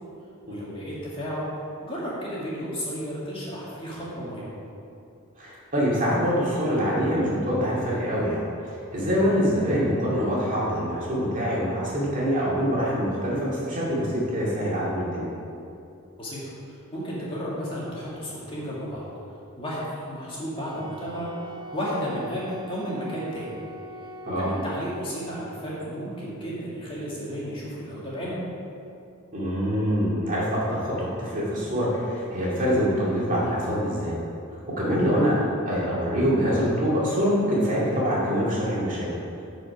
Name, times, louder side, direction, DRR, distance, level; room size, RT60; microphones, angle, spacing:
voice 1, 0.5-1.5 1.8-4.5 16.2-19.1 19.6-23.5 24.4-28.4, equal, 25° left, -7 dB, 2.1 m, -33 dB
voice 2, 5.4-15.3 24.2-24.5 29.3-34.1 34.8-39.1, equal, 40° right, -6 dB, 2.4 m, -25 dB
Wind instrument woodwind instrument, 20.6-25.5, right 1 dB, 20° right, 0.5 m, -42 dB
12.5 x 5.1 x 4.9 m, 2.7 s
head